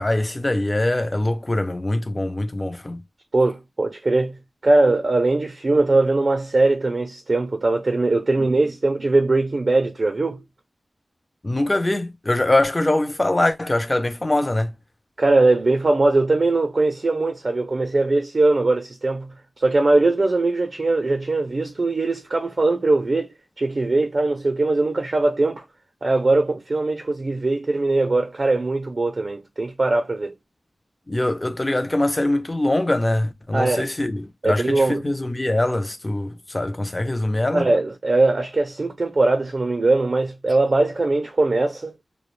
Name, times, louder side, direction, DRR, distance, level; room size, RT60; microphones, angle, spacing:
voice 1, 0.0-3.0 11.4-14.7 31.1-37.7, left 1 dB, 25° left, 0.4 m, -23 dB
voice 2, 3.3-4.4 4.6-10.4 15.2-23.3 23.6-25.6 26.0-30.3 33.5-33.9 34.4-35.0 37.5-41.9, right 2 dB, 50° right, 0.4 m, -20 dB
2.3 x 2.1 x 3.0 m
wide cardioid pair, 85°, 0 cm